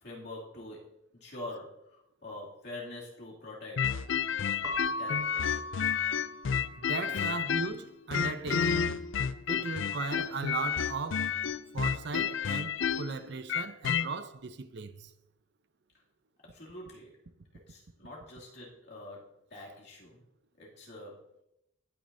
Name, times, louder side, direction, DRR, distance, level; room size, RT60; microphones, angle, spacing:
voice 1, 0.0-3.9 5.0-5.4 7.1-7.4 16.5-17.1 17.7-20.2 20.6-21.2, left 2 dB, 55° left, 2.6 m, -45 dB
sound 1, 3.8-7.8 8.1-14.1, left 7 dB, 70° left, 0.4 m, -30 dB
Keyboard (musical) / Bell, 4.6-7.1, equal, 15° right, 0.8 m, -39 dB
voice 2, 6.8-8.9 9.5-11.4 11.7-15.1, right 4 dB, 55° right, 0.6 m, -37 dB
18.5 x 6.5 x 2.7 m
head